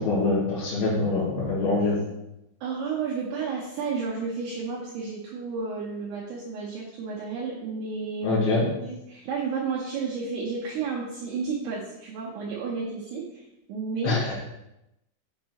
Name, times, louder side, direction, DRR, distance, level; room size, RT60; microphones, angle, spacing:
voice 1, 0.0-2.0 8.2-8.6 14.0-14.3, left 3 dB, 65° left, -8 dB, 2.7 m, -24 dB
voice 2, 2.6-8.4 8.8-14.2, right 5 dB, 80° right, -4 dB, 2.3 m, -32 dB
7.2 x 5.6 x 2.9 m, 0.89 s
omnidirectional pair, 5.8 m